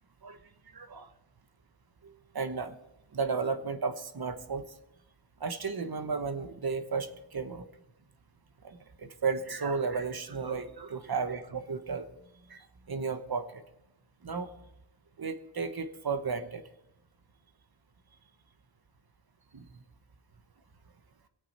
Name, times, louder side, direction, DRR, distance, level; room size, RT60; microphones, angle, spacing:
voice 1, 0.7-1.1 2.0-2.7 3.1-4.6 5.4-7.7 8.6-12.1 12.5-12.6 12.9-13.6 14.2-14.5 15.2-16.6 19.5-19.7, right 5 dB, 50° right, 9 dB, 1.2 m, -34 dB
22.5 x 8.6 x 4.3 m, 0.86 s
wide cardioid pair, 75°, 48 cm